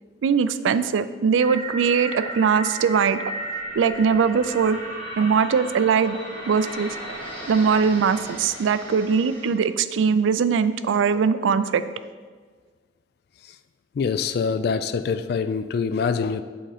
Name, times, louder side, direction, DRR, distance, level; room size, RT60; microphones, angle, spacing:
voice 1, 0.2-3.2 3.8-4.8 5.2-6.2 6.5-7.2 7.5-11.8, right 6 dB, 90° right, 13 dB, 0.3 m, -21 dB
sound 1, 1.4-9.5, right 1 dB, 25° left, 1.7 m, -35 dB
voice 2, 14.0-16.4, left 5 dB, 55° left, 12 dB, 0.3 m, -24 dB
7.8 x 3.7 x 4.9 m, 1.5 s
head